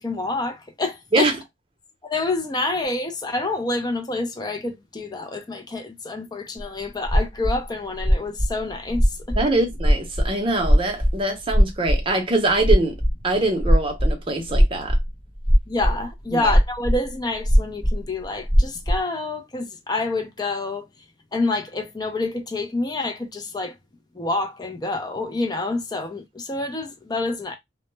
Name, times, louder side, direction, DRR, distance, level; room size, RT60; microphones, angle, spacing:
voice 1, 0.0-1.3 2.0-9.6 15.7-20.9 21.3-23.8 24.1-27.6, left 2 dB, 20° left, 0.5 m, -27 dB
sound 1, 6.6-6.7 7.0-7.6 8.0-10.3 10.6-11.2 11.5-12.0 12.5-14.1 14.4-15.1 15.3-16.1 16.4-17.0 17.4-18.0 18.2-19.0, equal, 5° left, 0.9 m, -18 dB
voice 2, 9.4-13.0 13.2-15.0 16.3-16.5, right 2 dB, 30° right, 0.7 m, -23 dB
2.2 x 2.0 x 3.1 m
head